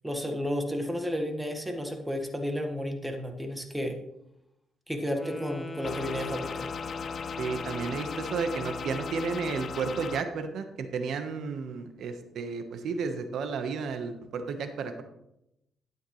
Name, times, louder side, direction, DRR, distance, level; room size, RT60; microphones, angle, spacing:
voice 1, 0.0-4.0 4.9-6.7, equal, 5° right, 4 dB, 1.5 m, -32 dB
Wind instrument woodwind instrument, 5.1-9.7, left 2 dB, 15° left, 1.1 m, -40 dB
sound 1, 5.8-10.2, left 7 dB, 50° left, 0.5 m, -38 dB
voice 2, 7.4-15.0, right 5 dB, 70° right, 8 dB, 1.1 m, -32 dB
12.0 x 9.0 x 3.2 m, 0.84 s
cardioid pair, 90°, 0 cm